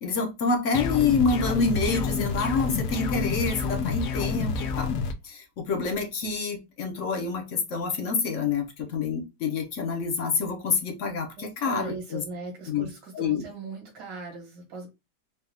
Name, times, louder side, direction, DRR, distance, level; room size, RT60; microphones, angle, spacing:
voice 1, 0.0-5.0 5.2-12.2 12.7-12.9 13.1-13.4, left 4 dB, 50° left, 1.0 m, -27 dB
sound 1, 0.7-5.1, left 5 dB, 75° left, 0.8 m, -28 dB
voice 2, 11.4-14.9, right 4 dB, 60° right, 2.2 m, -39 dB
4.7 x 2.4 x 3.4 m
omnidirectional pair, 2.1 m